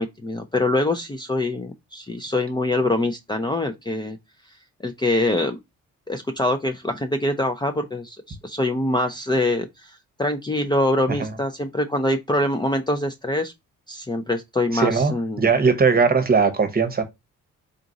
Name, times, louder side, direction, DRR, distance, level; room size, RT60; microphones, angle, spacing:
voice 1, 0.0-4.2 4.8-5.6 6.1-13.5 13.9-15.5, left 1 dB, 15° left, 0.5 m, -24 dB
voice 2, 14.7-17.0, right 5 dB, 30° right, 0.9 m, -19 dB
3.9 x 2.4 x 3.9 m
cardioid pair, 90°, 30 cm